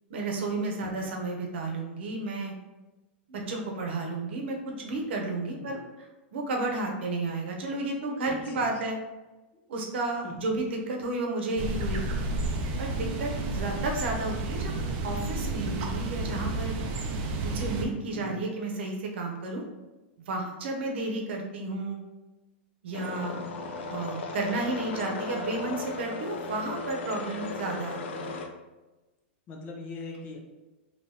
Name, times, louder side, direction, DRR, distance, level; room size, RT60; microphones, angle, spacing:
voice 1, 0.1-2.5 3.3-6.1 6.3-9.0 9.7-12.0 12.8-14.7 15.0-16.8 17.4-19.6 20.3-22.0 22.8-23.3 23.9-28.3, right 2 dB, 75° right, 1 dB, 0.8 m, -32 dB
sound 1, 11.6-17.9, right 2 dB, 35° right, 0.4 m, -31 dB
voice 2, 18.1-18.4 29.5-30.4, left 3 dB, 25° left, 2 dB, 0.5 m, -41 dB
sound 2, 22.9-28.5, left 3 dB, 80° left, 0.5 m, -36 dB
3.3 x 2.9 x 2.7 m, 1.1 s
supercardioid pair, 155°, 6 cm